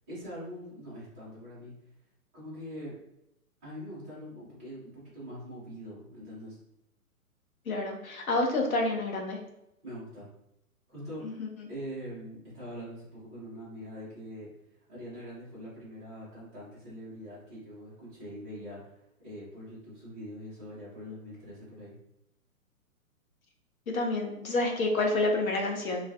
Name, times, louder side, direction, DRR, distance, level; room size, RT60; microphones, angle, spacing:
voice 1, 0.1-1.7 2.3-2.9 3.6-6.6 9.8-10.3 10.9-11.4 11.7-14.5 14.9-21.9, equal, 10° right, -11 dB, 0.5 m, -43 dB
voice 2, 7.7-9.4 11.2-11.5 23.9-26.1, left 2 dB, 65° left, 1 dB, 0.8 m, -28 dB
2.3 x 2.2 x 2.6 m, 0.83 s
figure-of-eight pair, 120°, 44 cm